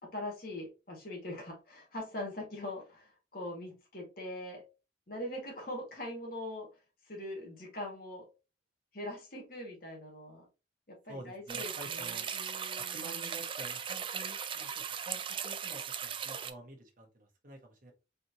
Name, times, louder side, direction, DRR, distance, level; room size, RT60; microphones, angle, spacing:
voice 1, 0.0-4.6 5.1-6.7 7.0-8.2 8.9-10.5 10.9-13.4, left 1 dB, 50° left, 0 dB, 1.8 m, -42 dB
voice 2, 11.1-12.3 12.8-17.9, right 1 dB, 45° right, 2 dB, 1.1 m, -49 dB
sound 1, 11.5-16.5, right 7 dB, 30° right, 0.3 m, -38 dB
4.3 x 3.4 x 2.7 m, 0.29 s
head